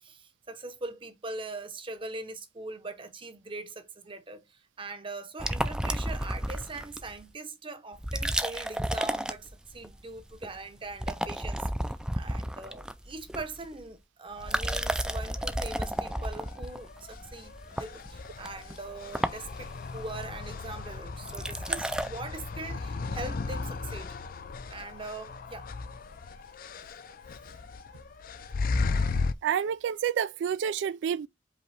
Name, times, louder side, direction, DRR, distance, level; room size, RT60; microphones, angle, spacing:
voice 1, 0.0-24.1 24.7-25.7, right 3 dB, 30° right, 0.8 m, -41 dB
sound 1, 5.4-7.2 7.9-9.9 10.2-10.6 10.9-13.8 14.3-22.1, right 1 dB, 5° right, 0.4 m, -32 dB
sound 2, 14.4-29.3, left 4 dB, 50° left, 0.4 m, -36 dB
voice 2, 29.4-31.3, right 8 dB, 80° right, 0.3 m, -29 dB
5.1 x 2.9 x 3.3 m
head